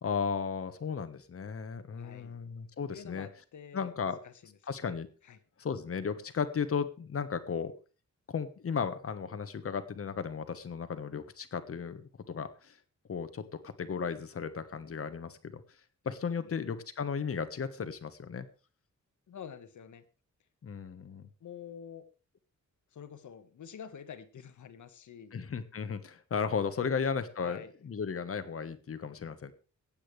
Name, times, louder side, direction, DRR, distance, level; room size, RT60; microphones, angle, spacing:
voice 1, 0.0-3.3 3.7-4.2 4.7-5.1 5.6-7.7 8.3-12.8 13.1-15.6 16.0-18.5 20.6-21.3 25.3-29.5, left 6 dB, 50° left, 10 dB, 1.4 m, -35 dB
voice 2, 1.9-2.4 2.9-5.4 16.4-16.5 19.3-20.0 21.4-22.1 22.9-25.4 26.8-26.9 27.4-27.7, left 8 dB, 75° left, 10 dB, 1.5 m, -48 dB
23.5 x 8.8 x 3.4 m, 0.35 s
wide cardioid pair, 135°, 30 cm